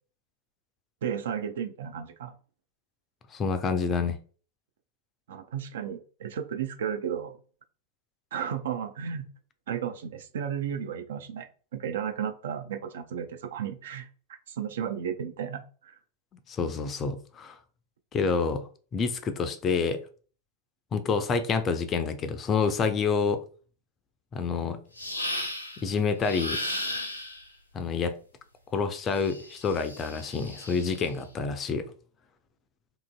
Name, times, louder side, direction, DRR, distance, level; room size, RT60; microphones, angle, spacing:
voice 1, 1.0-2.3 5.3-7.3 8.3-9.3 9.7-14.1 14.5-16.0, right 8 dB, 60° right, 0.3 m, -33 dB
voice 2, 3.3-4.2 16.5-17.6 18.1-20.0 20.9-23.4 24.3-24.8 25.8-26.6 27.7-28.1 28.7-31.9, left 5 dB, 25° left, 0.3 m, -28 dB
sound 1, 25.0-25.8 26.2-27.5 29.2-31.1, left 1 dB, 80° left, 0.5 m, -35 dB
2.8 x 2.5 x 2.2 m
figure-of-eight pair, 90°, 0 cm